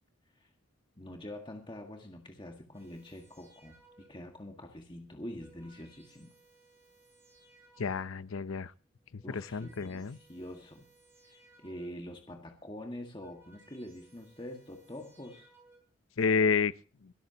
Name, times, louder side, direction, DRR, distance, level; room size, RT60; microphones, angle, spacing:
voice 1, 1.0-6.3 9.2-10.9 11.2-15.5, left 1 dB, 25° left, 1.7 m, -45 dB
sound 1, 2.7-4.4 5.1-8.3 9.0-12.2 12.9-15.8, right 2 dB, 15° right, 7.4 m, -62 dB
voice 2, 7.8-8.7 9.1-10.2 16.2-16.7, left 5 dB, 85° left, 0.7 m, -29 dB
23.0 x 13.0 x 2.9 m
head